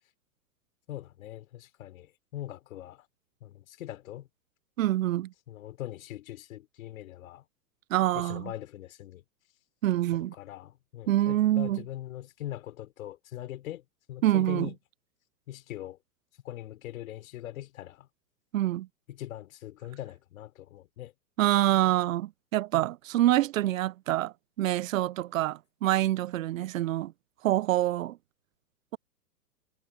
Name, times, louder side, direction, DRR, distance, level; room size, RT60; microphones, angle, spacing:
voice 1, 0.9-3.1 3.4-4.3 5.5-7.4 8.1-9.2 10.1-14.7 15.5-16.0 16.4-18.1 19.1-21.1, left 13 dB, 55° left, 5.0 m, -41 dB
voice 2, 4.8-5.3 7.9-8.5 9.8-10.3 11.1-11.8 14.2-14.7 18.5-18.9 21.4-27.1 27.4-28.2, right 14 dB, 55° right, 0.9 m, -26 dB
figure-of-eight pair, 115°, 48 cm